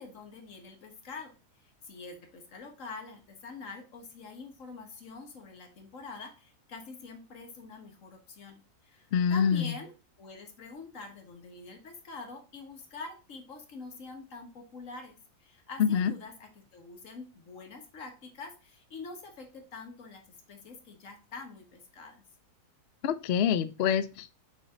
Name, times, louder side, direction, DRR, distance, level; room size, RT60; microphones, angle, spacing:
voice 1, 0.0-1.3 1.6-9.9 10.2-20.2 20.5-22.2, left 4 dB, 55° left, 4 dB, 1.6 m, -45 dB
voice 2, 9.1-9.7 15.8-16.1 23.0-24.3, left 8 dB, 80° left, 12 dB, 0.5 m, -26 dB
5.6 x 5.0 x 3.7 m, 0.32 s
omnidirectional pair, 1.7 m